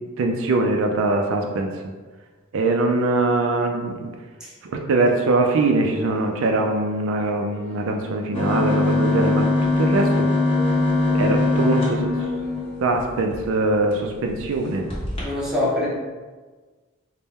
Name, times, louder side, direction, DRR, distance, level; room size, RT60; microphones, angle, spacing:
voice 1, 0.2-1.7 2.5-4.1 4.6-10.3 11.1-12.1 12.8-14.8, right 2 dB, 70° right, 2 dB, 0.4 m, -22 dB
sound 1, 5.1-13.2, equal, 45° left, 0.6 m, -41 dB
sound 2, 8.3-13.4 13.9-14.0 14.3-14.5 14.9-15.2, left 2 dB, 30° left, 1.0 m, -21 dB
voice 2, 15.2-15.9, left 1 dB, 5° right, -7 dB, 0.9 m, -24 dB
3.5 x 2.1 x 4.1 m, 1.4 s
head